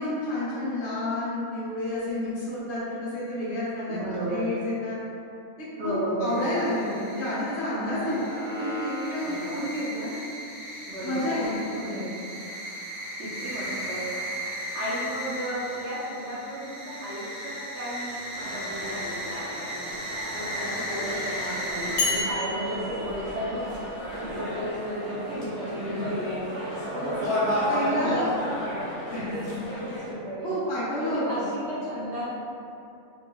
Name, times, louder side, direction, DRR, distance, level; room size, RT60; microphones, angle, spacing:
voice 1, 0.0-4.0 4.3-5.0 5.8-10.1 11.0-12.2 25.7-26.1 27.7-28.3 29.1-29.6 30.4-31.4, left 1 dB, 55° left, -9 dB, 0.9 m, -30 dB
voice 2, 3.9-4.5 5.8-6.7 7.8-8.0 9.2-9.7 10.9-11.4 13.2-14.0 14.7-19.9 20.3-23.7 24.2-27.3 27.8-28.8 29.1-30.5 31.0-32.3, equal, 60° right, -9 dB, 0.9 m, -34 dB
sound 1, 6.2-22.2, equal, 30° right, 0.9 m, -36 dB
sound 2, 18.3-30.1, equal, 30° left, 0.7 m, -33 dB
sound 3, 22.0-24.0, left 3 dB, 90° left, 1.2 m, -31 dB
3.2 x 3.1 x 2.3 m, 2.7 s
omnidirectional pair, 1.5 m